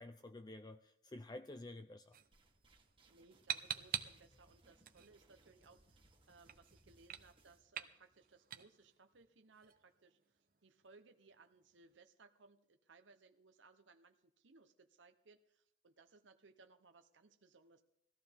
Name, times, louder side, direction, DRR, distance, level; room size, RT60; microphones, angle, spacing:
voice 1, 0.0-2.2, left 2 dB, 20° left, 9 dB, 0.5 m, -51 dB
sound 1, 2.1-12.0, right 9 dB, 50° right, 0.9 m, -49 dB
sound 2, 2.3-7.6, right 2 dB, 30° right, 1.8 m, -69 dB
voice 2, 3.1-17.8, right 4 dB, 85° right, 7 dB, 0.9 m, -65 dB
19.5 x 14.5 x 3.6 m, 0.78 s
head